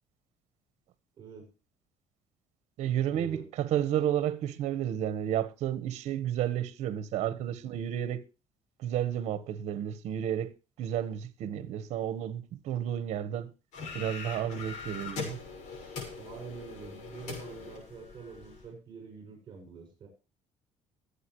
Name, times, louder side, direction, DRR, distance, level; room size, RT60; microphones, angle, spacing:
voice 1, 1.2-1.5 3.1-3.4 7.3-7.4 16.2-20.1, right 5 dB, 35° right, 7.1 m, -45 dB
voice 2, 2.8-8.2 8.8-13.5 13.9-15.4, right 10 dB, 60° right, 1.5 m, -32 dB
sound 1, 13.7-18.6, left 5 dB, 75° left, 6.1 m, -41 dB
22.5 x 8.6 x 3.2 m
cardioid pair, 175°, 12 cm